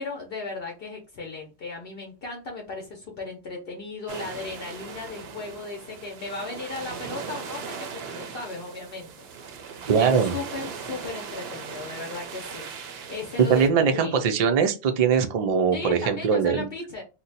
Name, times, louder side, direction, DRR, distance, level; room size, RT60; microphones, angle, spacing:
voice 1, 0.0-9.1 9.4-14.2 15.7-17.0, left 3 dB, 60° left, 0.9 m, -36 dB
sound 1, 4.1-13.7, right 6 dB, 70° right, 0.8 m, -39 dB
voice 2, 9.9-10.4 13.5-16.7, right 6 dB, 50° right, 0.4 m, -22 dB
2.7 x 2.2 x 3.9 m
omnidirectional pair, 1.1 m